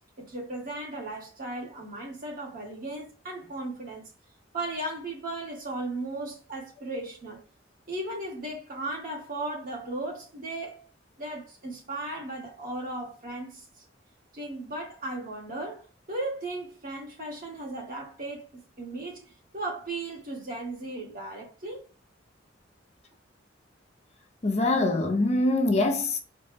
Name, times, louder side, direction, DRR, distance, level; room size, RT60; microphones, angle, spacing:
voice 1, 0.2-4.1 4.5-7.4 7.9-10.9 11.2-13.6 14.3-21.9, right 2 dB, 50° right, 1.5 m, -36 dB
voice 2, 24.4-26.2, left 2 dB, 35° left, 0.6 m, -24 dB
4.1 x 2.2 x 3.3 m
head